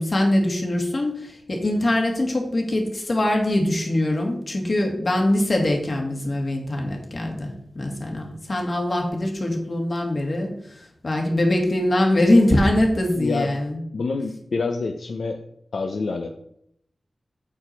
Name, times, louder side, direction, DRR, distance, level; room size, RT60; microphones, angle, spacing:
voice 1, 0.0-10.5 11.0-13.8, left 1 dB, 45° left, 1 dB, 2.3 m, -22 dB
voice 2, 13.2-13.6 13.9-15.4 15.7-16.3, left 4 dB, 80° left, 4 dB, 0.7 m, -27 dB
8.6 x 7.0 x 4.5 m, 0.71 s
wide cardioid pair, 115°, 0 cm